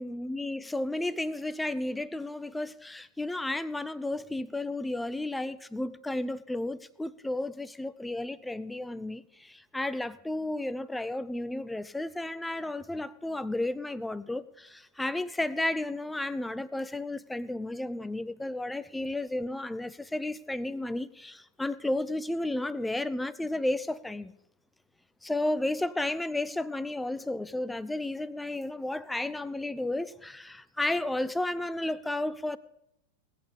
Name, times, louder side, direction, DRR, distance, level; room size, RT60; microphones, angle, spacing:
voice 1, 0.0-24.3 25.2-32.6, left 1 dB, 5° left, 0.5 m, -33 dB
19.5 x 8.4 x 5.3 m
figure-of-eight pair, 90°, 0 cm